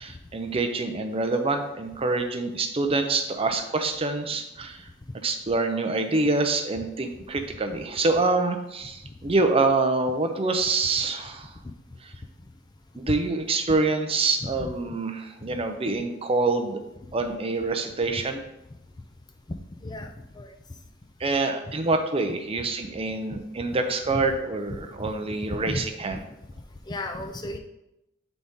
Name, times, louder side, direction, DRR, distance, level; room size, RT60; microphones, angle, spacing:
voice 1, 0.0-4.8 5.2-11.5 13.0-16.8 17.1-18.4 21.2-26.2, right 3 dB, 30° right, 6 dB, 0.5 m, -26 dB
voice 2, 14.4-14.7 19.8-20.5 24.1-24.2 25.0-25.1 25.7-25.8 26.1-26.2 26.9-27.6, left 2 dB, 20° left, 5 dB, 0.4 m, -34 dB
7.4 x 4.0 x 3.6 m, 0.88 s
head